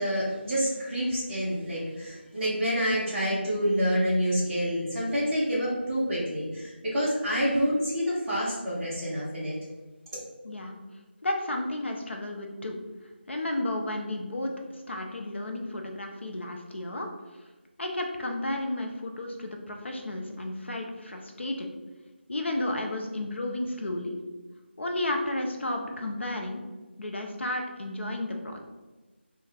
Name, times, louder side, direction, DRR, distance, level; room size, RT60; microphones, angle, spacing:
voice 1, 0.0-9.5, equal, 5° right, -14 dB, 0.6 m, -27 dB
voice 2, 10.4-10.8 11.2-12.8 13.3-17.1 17.8-21.7 22.3-24.2 24.8-26.6 27.0-28.6, left 1 dB, 70° left, 3 dB, 0.6 m, -32 dB
3.3 x 2.2 x 3.3 m, 1.2 s
figure-of-eight pair, 170°, 6 cm